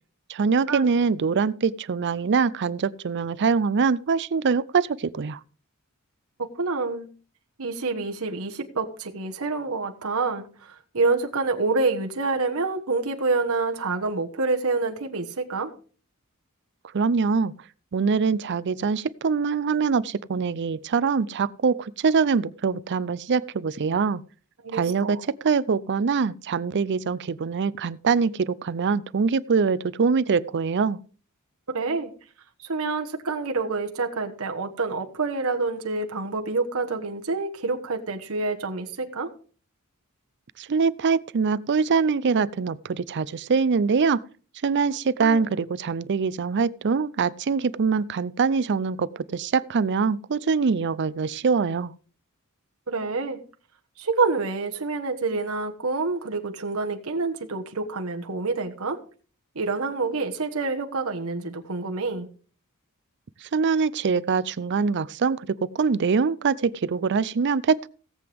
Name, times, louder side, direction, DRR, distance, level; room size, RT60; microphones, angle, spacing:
voice 1, 0.3-5.4 16.9-17.5 17.9-24.2 24.7-31.0 40.6-44.2 44.6-51.9 63.4-65.5 65.7-67.9, right 5 dB, 55° right, 18 dB, 0.5 m, -23 dB
voice 2, 6.4-7.1 7.6-15.7 24.6-25.2 31.7-32.1 32.6-39.3 45.2-45.4 52.9-53.4 54.0-59.0 59.5-62.3, right 3 dB, 70° right, 4 dB, 1.3 m, -27 dB
17.0 x 7.8 x 3.5 m, 0.40 s
head